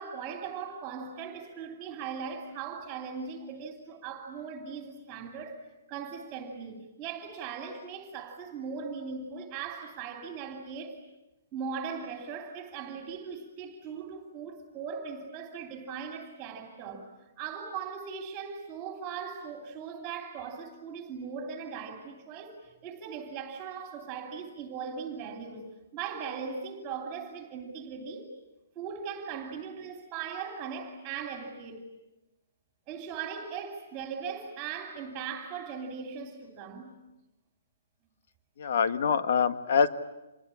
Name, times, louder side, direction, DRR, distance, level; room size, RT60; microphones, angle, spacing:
voice 1, 0.0-11.0 11.5-17.1 17.4-28.3 28.7-31.9 32.9-36.9, right 6 dB, 15° right, 2.8 m, -39 dB
voice 2, 38.6-39.9, left 6 dB, 50° left, 1.5 m, -25 dB
27.0 x 21.0 x 9.8 m
hypercardioid pair, 170°, 0 cm